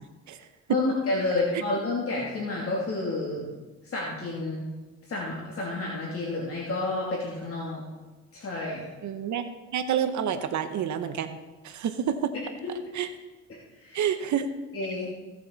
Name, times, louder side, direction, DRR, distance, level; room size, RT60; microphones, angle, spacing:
voice 1, 0.7-3.5 3.8-4.7 5.1-7.8 8.3-8.9 13.5-14.0 14.7-15.1, left 2 dB, 50° left, -4 dB, 2.8 m, -30 dB
voice 2, 9.0-11.4 11.6-12.3 12.9-13.1 13.9-14.5, right 9 dB, 70° right, 9 dB, 0.9 m, -28 dB
17.0 x 7.4 x 4.1 m, 1.2 s
cardioid pair, 90°, 30 cm